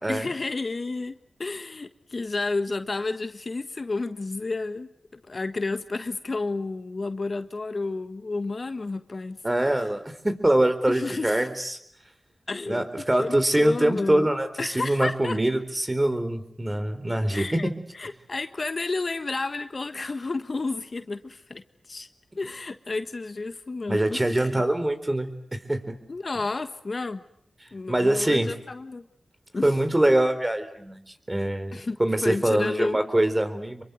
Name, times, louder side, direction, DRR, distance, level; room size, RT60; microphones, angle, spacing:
voice 1, 0.1-9.4 10.9-11.5 12.5-14.3 14.6-15.4 17.3-22.1 22.4-24.6 26.1-27.2 27.7-29.0 29.5-29.7 31.7-33.0, left 3 dB, 55° left, 10 dB, 1.5 m, -31 dB
voice 2, 9.4-11.8 12.7-17.6 23.9-26.0 27.9-28.5 29.6-31.0 31.3-33.8, right 1 dB, 25° right, 10 dB, 4.0 m, -24 dB
26.5 x 23.5 x 8.0 m, 0.71 s
cardioid pair, 45°, 0 cm